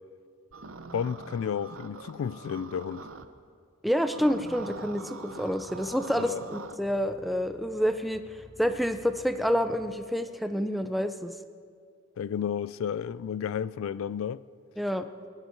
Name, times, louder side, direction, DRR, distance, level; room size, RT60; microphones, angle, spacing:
sound 1, 0.5-3.3 4.1-6.8, right 3 dB, 65° right, 0.8 m, -43 dB
voice 1, 0.9-3.1 6.3-6.4 12.2-14.4, left 7 dB, 70° left, 0.3 m, -32 dB
voice 2, 3.8-11.4 14.8-15.1, equal, ahead, 0.5 m, -28 dB
sound 2, 4.9-10.5, right 1 dB, 40° left, 2.5 m, -55 dB
22.0 x 11.0 x 4.5 m
head